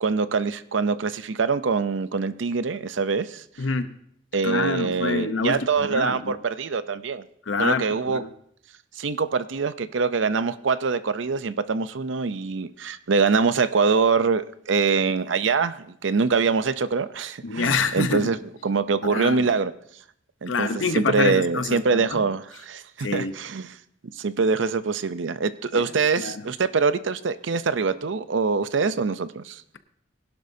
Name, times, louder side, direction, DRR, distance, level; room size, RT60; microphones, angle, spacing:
voice 1, 0.0-3.4 4.3-7.2 7.6-8.2 9.0-18.4 18.6-19.7 20.4-23.8 24.2-29.6, right 4 dB, 75° right, 13 dB, 0.6 m, -24 dB
voice 2, 3.6-3.9 4.4-6.3 7.5-8.3 17.4-18.3 19.0-19.5 20.5-22.2 23.0-23.3 25.7-25.8 26.2-26.4, left 4 dB, 85° left, 10 dB, 0.9 m, -26 dB
21.0 x 11.5 x 2.7 m, 0.67 s
head